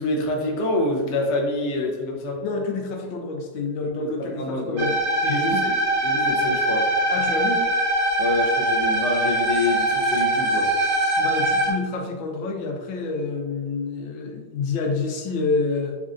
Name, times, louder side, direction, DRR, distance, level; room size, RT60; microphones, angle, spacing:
voice 1, 0.0-2.4 4.0-5.8 6.0-6.9 8.2-10.7, left 2 dB, 65° left, 0 dB, 0.7 m, -26 dB
voice 2, 2.4-4.9 5.2-5.6 7.1-7.6 11.2-16.0, left 3 dB, 80° left, 2 dB, 1.4 m, -28 dB
sound 1, 4.8-11.7, right 1 dB, 55° right, 0.9 m, -22 dB
4.3 x 3.6 x 2.4 m, 1.4 s
omnidirectional pair, 2.1 m